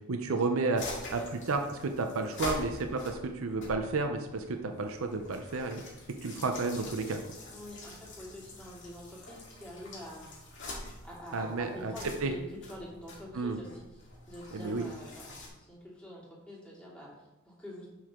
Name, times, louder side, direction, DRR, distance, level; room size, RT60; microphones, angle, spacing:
voice 1, 0.1-0.8 1.1-1.2 1.5-5.8 6.2-7.2 11.3-11.9 12.2-12.3 13.3-13.6 14.5-14.8, right 3 dB, 70° right, 5 dB, 0.7 m, -31 dB
sound 1, 0.8-15.5, left 2 dB, 60° left, 2.0 m, -45 dB
voice 2, 7.5-10.5 11.0-17.9, equal, 5° left, -6 dB, 2.6 m, -46 dB
7.7 x 6.3 x 3.7 m, 1.0 s
head